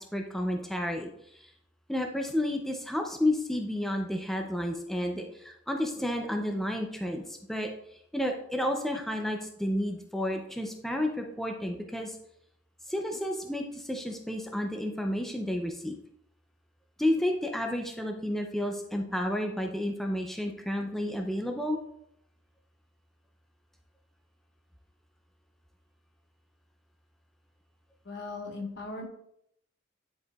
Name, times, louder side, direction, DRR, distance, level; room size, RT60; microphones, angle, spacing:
voice 1, 0.0-1.5 1.9-7.7 8.1-12.2 12.9-16.0 17.0-21.8, left 1 dB, ahead, 2 dB, 0.5 m, -31 dB
voice 2, 28.0-29.1, left 3 dB, 65° left, 1 dB, 1.4 m, -38 dB
10.5 x 4.7 x 2.4 m, 0.74 s
head